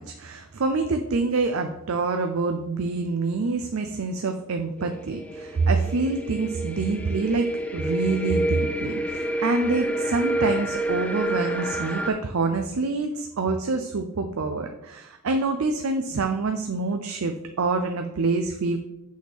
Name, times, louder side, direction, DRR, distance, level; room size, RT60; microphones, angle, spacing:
voice 1, 0.0-18.8, right 3 dB, 75° right, 6 dB, 0.5 m, -26 dB
sound 1, 4.8-12.1, right 1 dB, 5° left, 0.3 m, -29 dB
6.3 x 3.6 x 6.1 m, 0.90 s
head